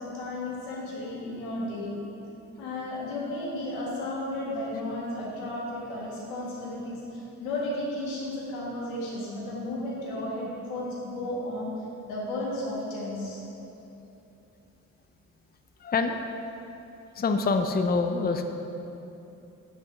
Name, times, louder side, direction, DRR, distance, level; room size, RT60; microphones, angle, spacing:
voice 1, 0.0-2.0 2.6-11.7 12.1-13.4, left 1 dB, 85° left, -5 dB, 1.7 m, -33 dB
voice 2, 15.8-16.2 17.2-18.5, left 4 dB, 25° left, 6 dB, 0.6 m, -25 dB
8.7 x 6.3 x 4.8 m, 2.9 s
hypercardioid pair, 40°, 40 cm